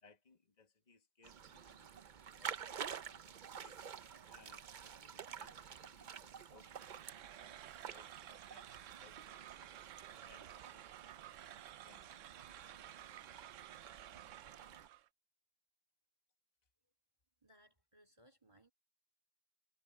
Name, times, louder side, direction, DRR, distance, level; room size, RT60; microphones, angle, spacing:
voice 1, 0.0-3.8 4.3-9.7 10.3-11.2 11.8-12.3, left 4 dB, 30° left, 1.8 m, -67 dB
sound 1, 1.2-14.9, right 7 dB, 50° right, 0.6 m, -50 dB
sound 2, 6.7-15.1, right 12 dB, 75° right, 1.0 m, -54 dB
voice 2, 17.4-18.7, equal, 20° right, 2.6 m, -67 dB
omnidirectional pair, 1.4 m